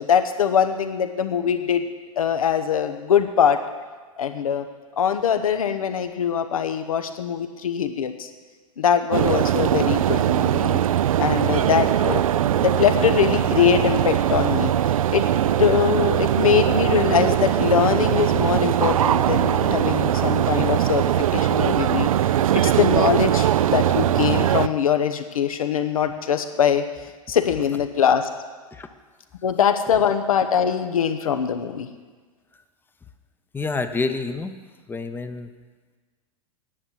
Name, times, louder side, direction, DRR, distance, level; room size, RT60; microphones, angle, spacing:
voice 1, 0.0-1.8 2.2-3.6 4.2-4.6 5.0-8.3 8.8-10.8 11.2-12.2 12.5-14.7 15.1-15.2 15.6-21.0 21.3-26.8 27.3-28.3 29.4-31.9, left 8 dB, 70° left, 8 dB, 1.0 m, -22 dB
sound 1, 9.1-24.7, right 11 dB, 70° right, 0.4 m, -21 dB
voice 2, 33.5-34.6 34.9-35.5, left 3 dB, 10° left, 9 dB, 0.8 m, -28 dB
10.0 x 8.2 x 7.2 m, 1.4 s
figure-of-eight pair, 95°, 19 cm